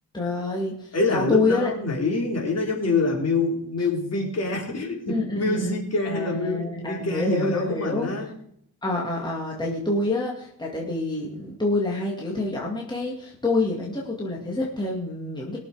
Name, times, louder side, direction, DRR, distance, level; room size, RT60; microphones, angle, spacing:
voice 1, 0.1-1.7 3.8-3.9 5.1-5.8 6.0-8.1 8.8-15.6, left 2 dB, 10° left, -3 dB, 2.2 m, -27 dB
voice 2, 0.9-8.3, left 3 dB, 40° left, -1 dB, 3.7 m, -26 dB
21.5 x 7.2 x 5.0 m, 0.69 s
wide cardioid pair, 155°, 38 cm